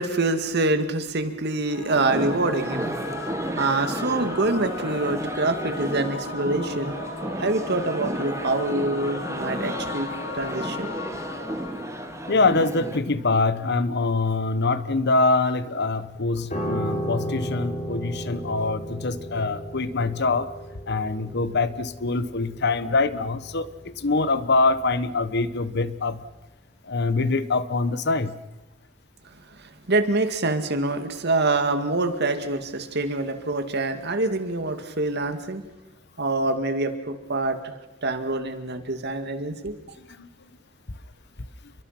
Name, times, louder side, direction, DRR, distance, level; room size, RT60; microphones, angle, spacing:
voice 1, 0.0-7.0 7.4-10.1 10.3-10.9 29.6-35.6 36.2-37.7 38.0-39.7, right 2 dB, 55° right, 8 dB, 2.2 m, -26 dB
Singing / Musical instrument, 1.6-12.9, left 3 dB, 80° left, 5.1 m, -36 dB
sound 1, 1.9-13.0, right 1 dB, 15° right, 1.3 m, -33 dB
voice 2, 12.3-20.5 20.9-26.2 26.8-28.4 40.0-40.5, left 3 dB, 60° left, 14 dB, 1.1 m, -24 dB
Piano, 16.5-25.9 26.1-26.4, equal, 40° left, 6.1 m, -34 dB
29.5 x 23.0 x 6.0 m, 1.1 s
head